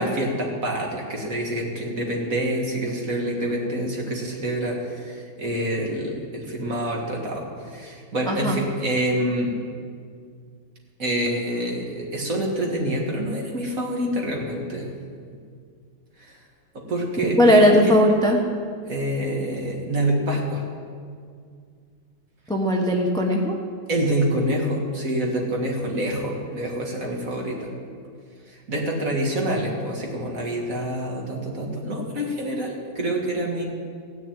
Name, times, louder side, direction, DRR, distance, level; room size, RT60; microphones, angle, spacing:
voice 1, 0.0-9.6 11.0-14.9 16.2-16.4 16.7-18.0 18.9-20.6 23.9-27.7 28.5-33.6, right 1 dB, 45° right, -1 dB, 2.4 m, -26 dB
voice 2, 8.3-8.6 17.4-18.4 22.5-23.6, equal, 5° left, 1 dB, 0.6 m, -18 dB
16.5 x 6.4 x 9.2 m, 2.1 s
omnidirectional pair, 2.1 m